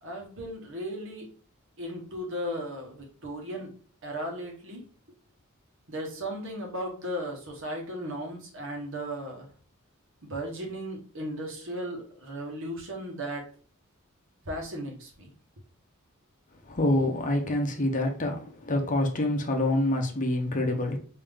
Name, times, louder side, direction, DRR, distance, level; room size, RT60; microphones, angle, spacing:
voice 1, 0.0-1.3 1.8-3.7 4.0-4.8 5.9-9.5 10.2-13.4 14.4-15.3, equal, 60° right, 1.2 m, -36 dB
voice 2, 16.7-21.0, left 1 dB, 35° left, 0.7 m, -26 dB
3.6 x 2.7 x 3.4 m
head